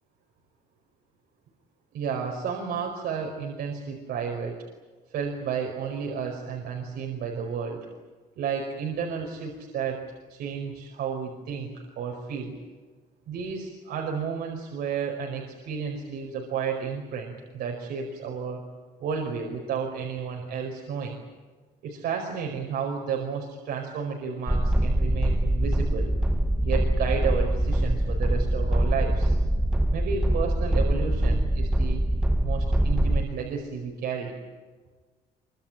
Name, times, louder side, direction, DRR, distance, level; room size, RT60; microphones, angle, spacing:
voice 1, 1.9-4.6 5.1-7.9 8.4-10.0 10.3-12.5 13.3-18.6 19.0-21.2 21.8-26.1 26.6-29.4 29.9-32.0 32.4-34.3, right 6 dB, 75° right, 1 dB, 5.1 m, -32 dB
sound 1, 24.5-33.2, right 1 dB, 5° right, 1.1 m, -23 dB
25.0 x 24.5 x 8.9 m, 1.3 s
cardioid pair, 110°, 17 cm